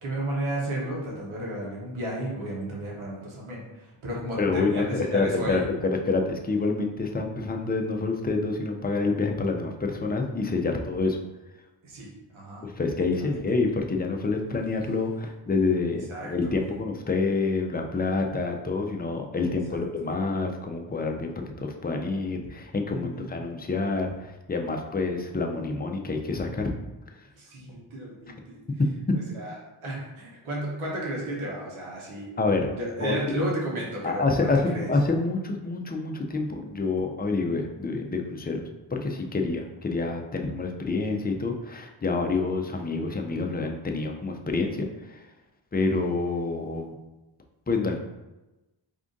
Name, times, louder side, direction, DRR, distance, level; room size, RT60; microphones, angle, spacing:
voice 1, 0.0-5.6 11.8-12.7 13.2-13.4 16.1-16.5 19.7-19.8 22.9-23.3 27.4-28.6 29.1-29.5 29.8-32.3 32.7-34.9 39.3-39.5, right 1 dB, 85° right, -4 dB, 1.1 m, -33 dB
voice 2, 4.4-11.2 12.6-26.7 28.8-29.2 32.4-32.7 33.0-33.2 34.0-38.6 38.9-45.2 45.7-47.0 47.7-48.0, left 3 dB, 20° left, 3 dB, 0.5 m, -27 dB
3.5 x 2.5 x 3.8 m, 1.1 s
cardioid pair, 55°, 47 cm